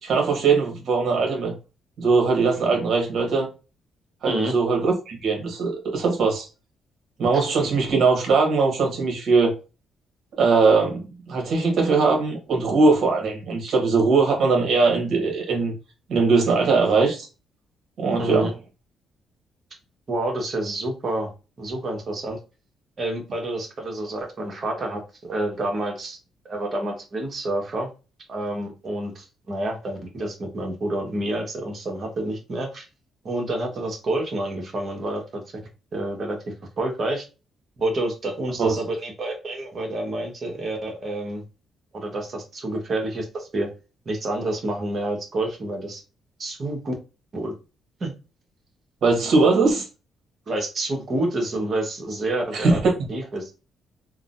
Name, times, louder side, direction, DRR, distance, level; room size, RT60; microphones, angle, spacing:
voice 1, 0.0-1.5 2.0-3.5 4.2-6.5 7.2-9.5 10.4-15.7 16.1-17.3 18.0-18.5 38.6-38.7 49.0-49.8 52.5-52.9, right 4 dB, 60° right, 1.4 m, -20 dB
voice 2, 18.2-18.5 20.1-21.3 21.6-22.4 23.0-26.2 26.4-27.9 28.3-32.8 33.2-35.4 35.9-37.2 37.8-41.4 41.9-43.7 44.0-46.0 46.4-46.9 47.3-47.5 48.0-48.1 50.5-53.5, right 1 dB, 45° right, 1.2 m, -28 dB
3.6 x 2.1 x 2.5 m
cardioid pair, 90°, 0 cm